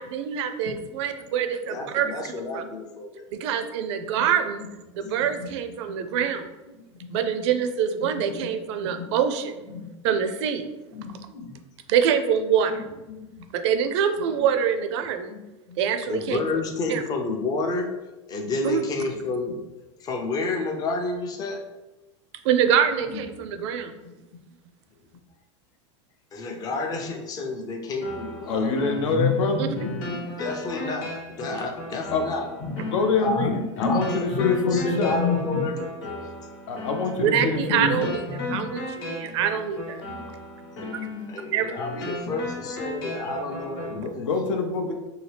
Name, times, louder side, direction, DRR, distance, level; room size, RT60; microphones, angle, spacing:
voice 1, 0.0-2.1 2.5-2.6 3.3-4.7 4.9-6.5 7.1-9.7 10.0-10.7 11.9-12.8 13.5-15.3 15.8-16.4 16.9-17.0 18.6-18.8 22.4-24.0 29.6-29.7 37.2-38.3 38.5-40.0 41.5-41.7, right 8 dB, 65° right, 8 dB, 0.4 m, -25 dB
voice 2, 1.7-3.3 5.0-5.5 6.7-7.2 8.2-9.2 9.7-10.2 10.9-11.6 12.7-13.5 14.4-14.5 15.3-17.9 18.3-19.6 20.0-21.6 23.1-23.2 24.0-24.3 26.3-28.7 29.1-32.9 33.2-36.2 37.2-39.4 40.1-40.3 40.9-44.3, left 3 dB, 25° left, 3 dB, 0.5 m, -30 dB
sound 1, 28.0-44.0, left 2 dB, 60° left, 1.0 m, -36 dB
voice 3, 28.5-29.7 32.1-32.3 32.7-35.2 36.7-38.1 40.8-41.0 43.9-44.9, left 4 dB, 85° left, 5 dB, 0.6 m, -26 dB
2.7 x 2.7 x 3.3 m, 1.1 s
supercardioid pair, 140°, 16 cm